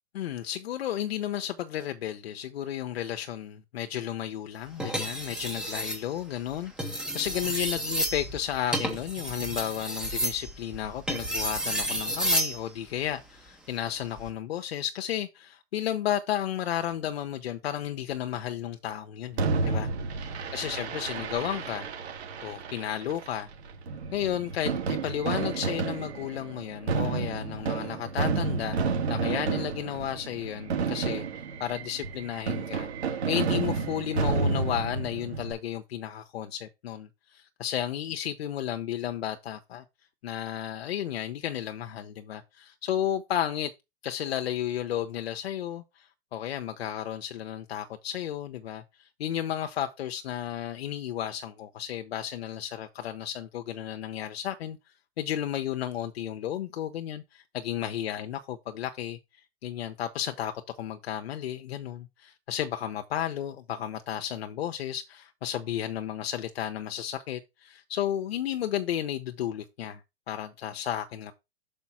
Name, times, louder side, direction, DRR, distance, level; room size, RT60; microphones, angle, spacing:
voice 1, 0.1-19.9 20.5-21.9 22.4-23.5 24.1-39.8 40.2-43.7 44.0-54.8 55.2-59.2 59.6-60.5 60.8-70.0 70.3-71.3, left 11 dB, 70° left, 0.8 m, -33 dB
sound 1, 4.8-6.0 6.7-12.6 14.0-14.3, right 1 dB, 5° right, 0.7 m, -31 dB
Fireworks, 19.4-35.5, right 4 dB, 85° right, 2.1 m, -31 dB
6.0 x 5.2 x 4.2 m
hypercardioid pair, 165°, 32 cm